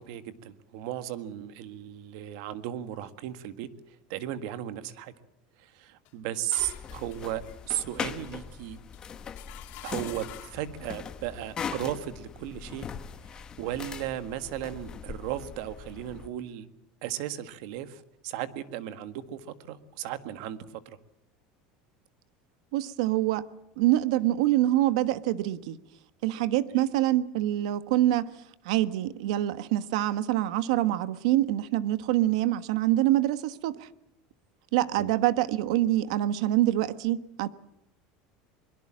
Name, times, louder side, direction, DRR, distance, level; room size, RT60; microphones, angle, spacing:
voice 1, 0.0-5.1 5.6-8.8 9.8-12.9 13.3-16.7 17.0-21.0 35.0-35.1, right 12 dB, 65° right, 1.7 m, -36 dB
sound 1, 6.0-10.7, left 14 dB, 50° left, 2.8 m, -48 dB
sound 2, 6.6-16.3, left 6 dB, 20° left, 1.3 m, -40 dB
voice 2, 22.7-23.4 23.8-25.8 26.2-28.3 28.6-33.9 34.7-37.5, right 14 dB, 80° right, 1.2 m, -25 dB
23.0 x 22.0 x 7.5 m
cardioid pair, 165°, 3 cm